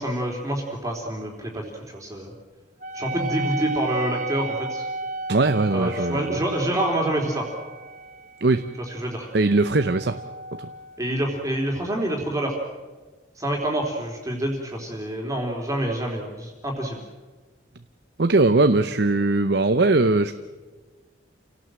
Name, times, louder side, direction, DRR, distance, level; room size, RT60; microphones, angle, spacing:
voice 1, 0.0-2.3 2.9-4.9 5.7-7.5 8.9-9.3 11.0-12.5 13.4-17.0, right 1 dB, 15° right, 0 dB, 3.5 m, -27 dB
Wind instrument woodwind instrument, 2.8-11.7, right 2 dB, 40° right, 1.6 m, -35 dB
voice 2, 5.3-6.4 8.4-8.7 9.3-10.2 10.6-10.7 18.2-20.4, right 2 dB, 60° right, 10 dB, 0.8 m, -20 dB
28.5 x 18.0 x 7.7 m, 1.3 s
head